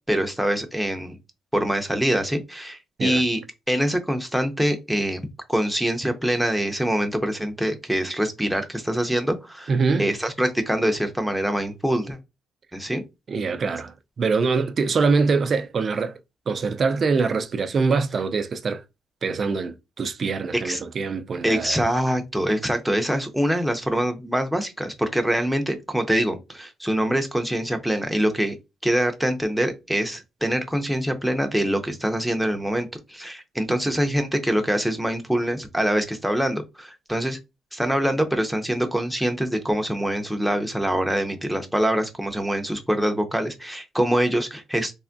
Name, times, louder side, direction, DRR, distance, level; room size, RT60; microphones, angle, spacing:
voice 1, 0.1-1.2 1.5-3.4 3.7-5.2 5.5-9.7 10.0-12.2 12.7-13.0 20.5-20.8 21.4-28.6 28.8-37.4 37.7-44.9, equal, ahead, 0.6 m, -24 dB
voice 2, 9.7-10.1 13.3-16.2 16.5-18.8 19.2-21.8 33.8-33.9, right 4 dB, 45° right, 0.4 m, -24 dB
3.4 x 2.0 x 2.5 m
cardioid pair, 90°, 0 cm